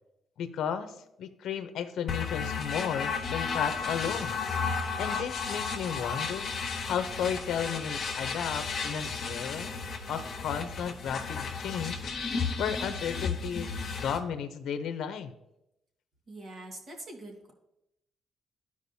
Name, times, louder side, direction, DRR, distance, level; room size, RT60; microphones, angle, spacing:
voice 1, 0.4-4.4 5.0-6.5 6.9-9.7 10.1-12.1 12.6-13.7 14.0-15.4, left 8 dB, 75° left, 9 dB, 0.7 m, -34 dB
sound 1, 2.1-14.2, left 5 dB, 45° left, 1.2 m, -33 dB
voice 2, 16.3-17.5, right 1 dB, 45° right, 1 dB, 1.8 m, -44 dB
13.0 x 4.9 x 2.8 m, 0.84 s
cardioid pair, 125°, 0 cm